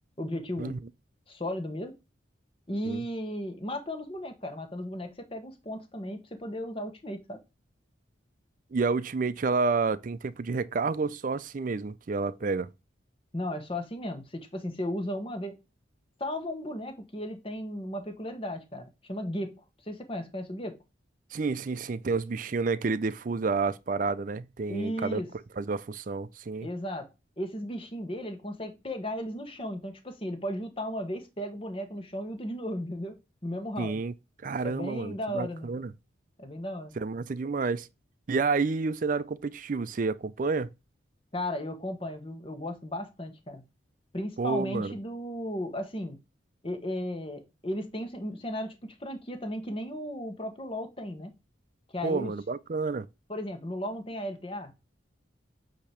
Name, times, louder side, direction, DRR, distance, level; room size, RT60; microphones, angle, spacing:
voice 1, 0.2-0.8 1.3-1.9 2.7-7.4 13.3-15.6 16.2-20.8 24.7-25.3 26.6-27.1 27.4-33.2 33.4-34.0 34.6-35.9 36.4-36.9 41.3-43.6 44.1-46.2 46.6-51.3 51.9-52.3 53.3-54.7, equal, 30° left, 1.2 m, -35 dB
voice 2, 8.7-12.7 21.3-25.2 25.6-26.7 33.8-34.1 34.4-35.9 37.0-37.9 38.3-40.7 44.4-44.9 52.0-53.1, right 4 dB, 40° right, 0.4 m, -29 dB
8.5 x 2.9 x 5.0 m
head